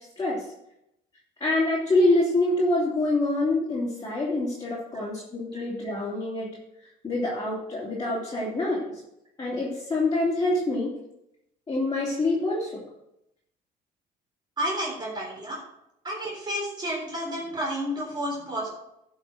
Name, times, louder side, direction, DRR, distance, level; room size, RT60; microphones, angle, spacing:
voice 1, 1.4-6.5 7.0-9.0 9.4-10.9 11.7-12.8, left 2 dB, 25° left, -5 dB, 3.1 m, -26 dB
voice 2, 14.6-15.6 16.0-18.7, equal, 25° right, -3 dB, 3.7 m, -31 dB
11.5 x 5.5 x 6.3 m, 0.83 s
cardioid pair, 110°, 17 cm